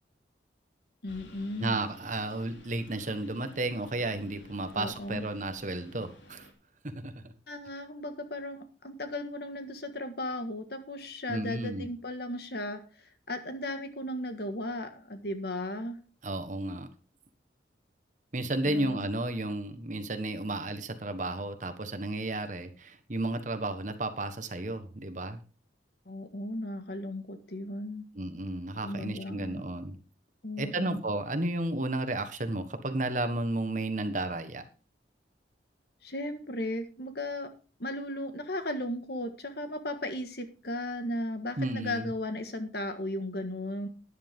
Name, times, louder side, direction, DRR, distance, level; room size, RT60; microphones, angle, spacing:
voice 1, 1.0-1.8 4.7-5.3 7.5-16.0 18.6-19.0 26.0-28.0 28.8-29.6 30.4-31.0 36.0-37.5 37.8-43.9, left 1 dB, 60° left, 8 dB, 1.7 m, -36 dB
Engine, 1.1-6.5, left 1 dB, 80° left, 3.1 m, -52 dB
voice 2, 1.6-6.5 6.8-7.2 11.3-11.9 16.2-16.9 18.3-25.4 28.1-30.0 30.6-34.6 41.6-42.1, right 2 dB, 40° right, 8 dB, 1.3 m, -33 dB
13.0 x 10.5 x 3.7 m, 0.36 s
head